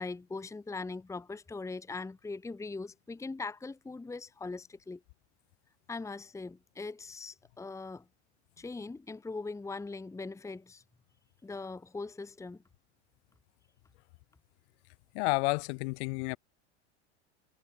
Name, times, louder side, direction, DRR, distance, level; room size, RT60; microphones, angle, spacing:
voice 1, 0.0-5.0 5.9-8.0 8.6-10.8 11.4-12.6, left 3 dB, 10° left, 1.2 m, -41 dB
voice 2, 15.1-16.4, left 27 dB, 65° left, 2.9 m, -30 dB
hypercardioid pair, 105°, 36 cm